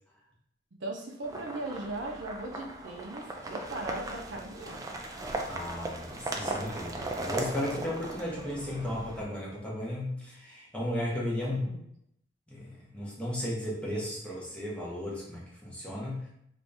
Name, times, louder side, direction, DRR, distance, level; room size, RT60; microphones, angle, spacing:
voice 1, 0.8-4.9 11.3-11.8, right 2 dB, 70° right, 1 dB, 0.6 m, -38 dB
sound 1, 1.2-9.2, right 2 dB, 20° right, 0.3 m, -38 dB
voice 2, 5.5-11.6 12.5-16.3, left 1 dB, 5° left, -5 dB, 0.8 m, -35 dB
2.9 x 2.5 x 3.3 m, 0.74 s
head